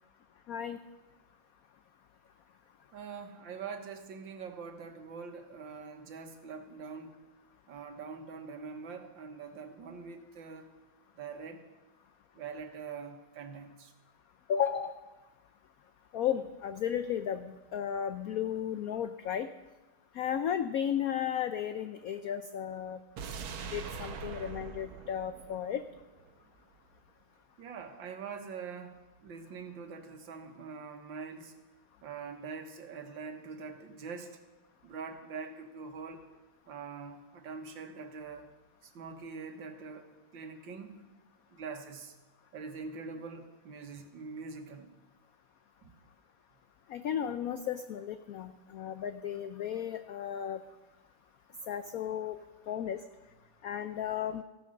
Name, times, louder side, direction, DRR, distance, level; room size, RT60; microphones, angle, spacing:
voice 1, 0.5-0.8 14.5-14.9 16.1-19.5 20.2-23.0 23.7-25.8 46.9-50.6 51.7-52.4 52.7-53.0 53.6-54.4, left 9 dB, 85° left, 10 dB, 0.7 m, -34 dB
voice 2, 2.9-7.2 7.7-10.7 11.2-11.6 12.4-13.9 27.6-31.5 32.0-34.4 34.8-36.2 36.7-38.5 38.8-40.1 40.3-41.0 41.5-42.2 42.5-44.9 45.8-45.9, right 5 dB, 70° right, 6 dB, 1.9 m, -44 dB
sound 1, 23.2-26.3 26.6-26.7, right 6 dB, 85° right, 1.9 m, -42 dB
15.0 x 9.4 x 6.4 m, 1.1 s
omnidirectional pair, 2.2 m